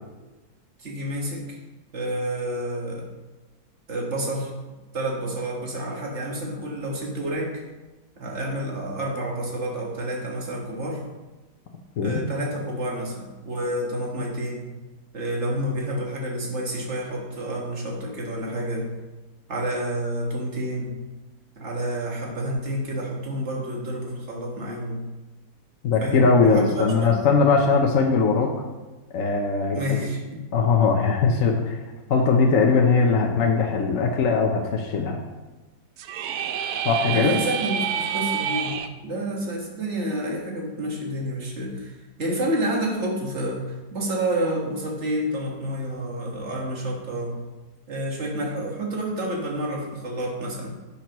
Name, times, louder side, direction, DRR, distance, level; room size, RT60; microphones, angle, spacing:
voice 1, 0.8-1.6 1.9-3.1 3.9-4.5 4.9-7.5 8.2-11.0 12.0-14.7 15.1-18.9 19.5-21.0 21.6-25.0 26.0-27.1 29.7-30.4 37.1-38.7 39.0-47.4 47.9-50.7, right 1 dB, 45° right, -2 dB, 1.9 m, -29 dB
voice 2, 25.8-28.5 29.1-30.0 30.5-31.8 32.1-35.2 36.8-37.4, left 4 dB, 60° left, 1 dB, 1.2 m, -20 dB
sound 1, 36.0-38.9, right 8 dB, 75° right, 1.1 m, -28 dB
10.5 x 7.0 x 3.0 m, 1.2 s
omnidirectional pair, 1.7 m